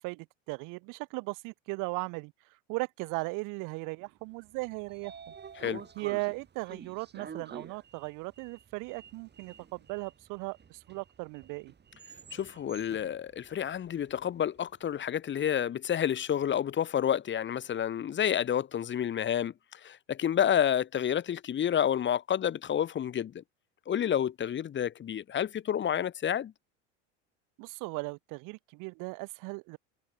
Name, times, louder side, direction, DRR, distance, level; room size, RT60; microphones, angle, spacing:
voice 1, 0.0-2.3 2.7-5.1 6.0-11.7 27.6-29.8, right 28 dB, 55° right, 1.0 m, -37 dB
Sliding door, 4.4-14.6, right 7 dB, 25° right, 6.9 m, -49 dB
voice 2, 12.3-23.4 23.9-26.5, left 9 dB, 30° left, 1.3 m, -29 dB
hypercardioid pair, 95°, 37 cm